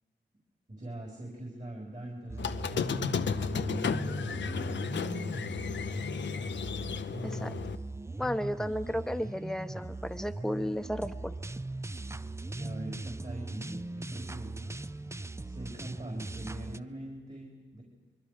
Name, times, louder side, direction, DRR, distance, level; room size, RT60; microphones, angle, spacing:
voice 1, 0.7-5.4 12.6-14.7 15.4-17.8, right 1 dB, 40° right, -2 dB, 5.0 m, -42 dB
sound 1, 2.3-16.8, right 2 dB, 15° right, 0.5 m, -39 dB
Squeak, 2.4-7.7, left 6 dB, 80° left, 0.7 m, -33 dB
voice 2, 7.2-7.6 8.2-11.3, equal, 5° left, 8 dB, 1.0 m, -33 dB
24.5 x 21.5 x 5.2 m, 1.3 s
cardioid pair, 50°, 18 cm